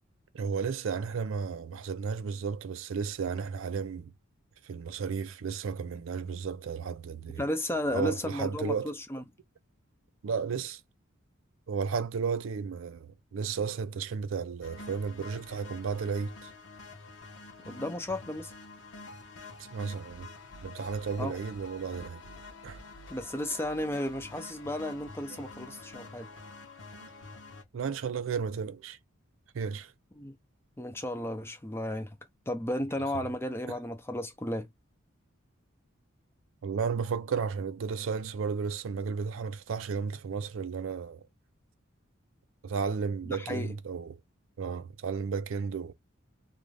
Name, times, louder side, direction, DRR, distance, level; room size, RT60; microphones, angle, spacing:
voice 1, 0.3-4.1 4.6-7.4 7.9-8.9 10.2-10.8 11.7-16.5 19.7-20.3 20.6-22.2 22.6-22.8 25.3-25.4 27.0-27.1 27.7-29.0 29.5-29.9 36.6-41.2 42.6-44.2 44.6-45.9, right 5 dB, 75° right, 0.4 m, -33 dB
voice 2, 7.3-9.2 17.7-18.5 21.2-21.4 23.1-26.3 30.2-30.4 30.8-32.2 32.5-34.7 43.2-43.7, left 1 dB, 10° left, 0.5 m, -34 dB
sound 1, 14.6-27.6, left 3 dB, 65° left, 0.8 m, -47 dB
2.5 x 2.3 x 3.2 m
head